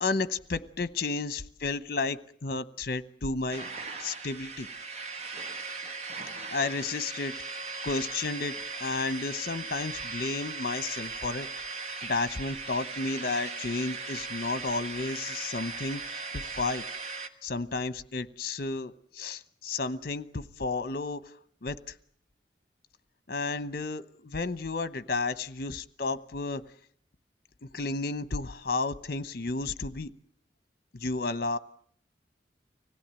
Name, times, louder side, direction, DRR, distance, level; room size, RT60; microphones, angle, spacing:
voice 1, 0.0-3.7 4.0-4.7 6.3-7.3 7.8-8.5 8.8-11.5 12.0-16.0 16.3-16.8 17.4-21.3 21.6-21.9 23.3-26.6 27.6-30.1 30.9-31.6, left 3 dB, 55° left, 13 dB, 1.0 m, -32 dB
sound 1, 3.5-17.3, right 4 dB, 40° right, 1.4 m, -38 dB
25.0 x 17.0 x 8.9 m, 0.63 s
head